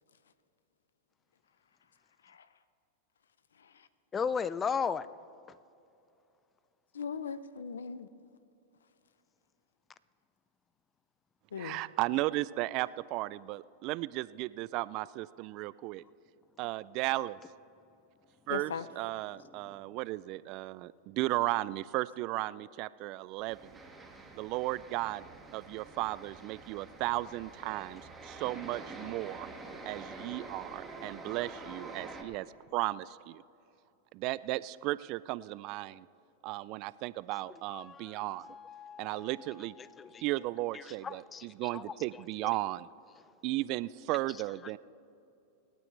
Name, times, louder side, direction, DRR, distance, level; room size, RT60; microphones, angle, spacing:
voice 1, 4.1-5.1 37.7-39.3 40.0-40.2 41.0-41.5 41.7-41.8, left 6 dB, 25° left, 0.5 m, -35 dB
voice 2, 6.9-8.1 11.5-11.8 18.5-18.9, left 6 dB, 85° left, 0.6 m, -39 dB
voice 3, 11.6-16.0 16.6-17.3 18.5-20.9 21.2-23.6 24.4-25.2 25.5-28.0 28.4-29.5 29.9-32.4 32.7-33.0 34.2-35.9 36.4-38.4 39.0-39.7 40.2-42.8 43.4-44.8, right 18 dB, 50° right, 0.3 m, -35 dB
sound 1, 23.5-32.2, right 3 dB, 10° right, 1.9 m, -47 dB
27.5 x 9.1 x 3.3 m
hypercardioid pair, 105°, 0 cm